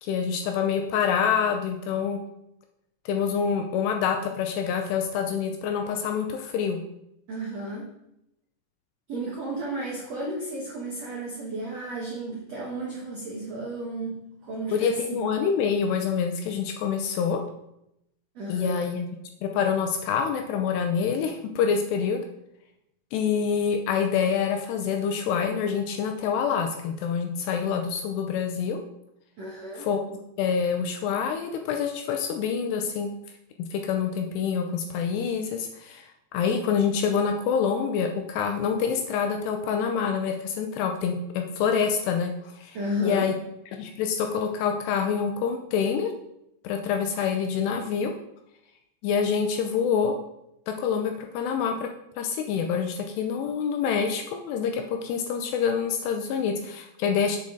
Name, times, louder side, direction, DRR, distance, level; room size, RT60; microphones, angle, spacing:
voice 1, 0.0-2.2 3.1-6.8 14.7-17.4 18.5-19.1 19.4-22.2 23.1-28.8 29.8-30.0 30.4-33.1 33.6-42.8 43.0-43.3 43.7-46.1 46.6-48.1 49.0-50.1 50.7-51.9 52.2-57.4, left 6 dB, 80° left, 4 dB, 2.5 m, -26 dB
voice 2, 7.3-7.9 9.1-15.2 18.3-18.8 29.4-29.9 42.7-43.3, right 1 dB, 85° right, -3 dB, 1.4 m, -33 dB
7.7 x 7.2 x 3.8 m, 0.82 s
omnidirectional pair, 5.3 m